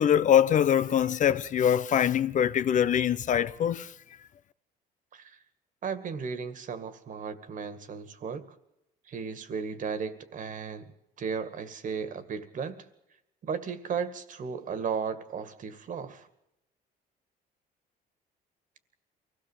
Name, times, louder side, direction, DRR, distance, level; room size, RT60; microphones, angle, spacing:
voice 1, 0.0-3.9, left 9 dB, 50° left, 0.8 m, -23 dB
voice 2, 5.8-8.4 9.1-10.9 11.2-12.8 13.4-16.3, right 6 dB, 50° right, 2.1 m, -35 dB
23.5 x 16.5 x 7.4 m
cardioid pair, 110°, 17 cm